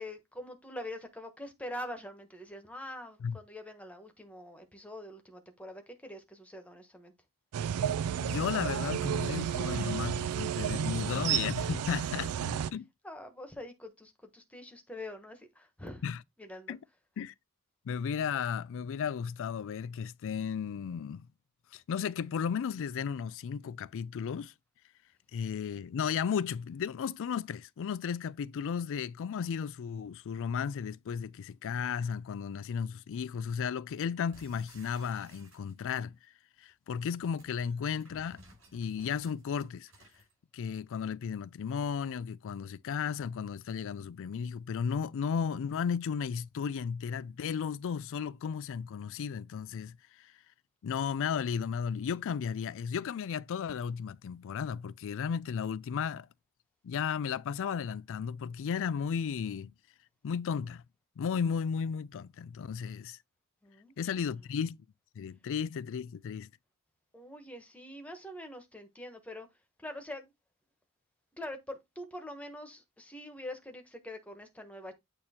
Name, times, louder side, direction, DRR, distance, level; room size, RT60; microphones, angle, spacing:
voice 1, 0.0-7.1 13.0-16.0 16.4-16.8 63.6-64.3 67.1-69.5 69.8-70.3 71.4-74.9, left 1 dB, 5° left, 1.2 m, -44 dB
sound 1, 7.5-12.7, right 9 dB, 80° right, 0.3 m, -32 dB
voice 2, 8.2-12.9 16.0-16.2 16.7-16.8 17.2-17.3 17.9-21.3 21.7-24.5 25.3-36.2 36.6-38.4 38.7-39.9 40.5-50.3 50.8-56.3 56.8-59.7 60.2-60.8 61.2-63.2 64.0-64.8 65.2-66.5, left 7 dB, 60° left, 0.3 m, -34 dB
sound 2, 34.3-36.0 37.0-40.3, right 1 dB, 65° right, 5.0 m, -58 dB
8.6 x 2.9 x 4.3 m
head